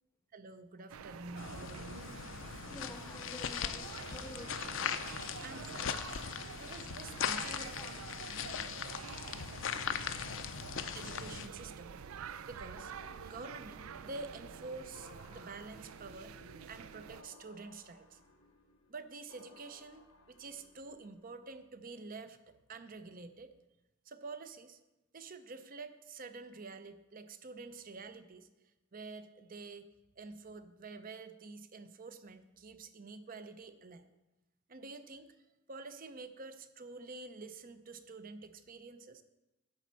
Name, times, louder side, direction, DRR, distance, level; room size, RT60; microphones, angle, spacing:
voice 1, 0.3-2.1 5.4-6.0 6.6-7.9 10.9-12.0 12.5-12.9 13.2-16.3 16.7-18.2 18.9-23.5 24.1-24.8 25.1-28.5 28.9-29.9 30.2-34.1 34.7-35.4 35.7-39.2, right 3 dB, 40° right, 0.6 m, -48 dB
sound 1, 0.9-17.2, right 7 dB, 85° right, 0.4 m, -48 dB
sound 2, 1.4-11.5, left 7 dB, 65° left, 0.6 m, -39 dB
voice 2, 2.7-4.6 7.5-7.6, left 2 dB, 15° left, 0.3 m, -50 dB
sound 3, 12.7-21.5, left 3 dB, 85° left, 1.1 m, -59 dB
10.5 x 4.3 x 7.6 m
head